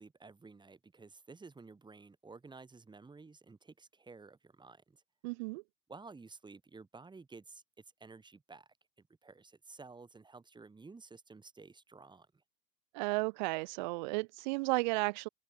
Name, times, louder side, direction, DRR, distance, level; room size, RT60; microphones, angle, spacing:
voice 1, 0.0-5.0 5.9-7.6 8.0-8.7 9.0-12.3, right 4 dB, 10° right, 3.7 m, -53 dB
voice 2, 5.2-5.6 12.9-15.3, right 26 dB, 30° right, 0.6 m, -33 dB
figure-of-eight pair, 95°, 47 cm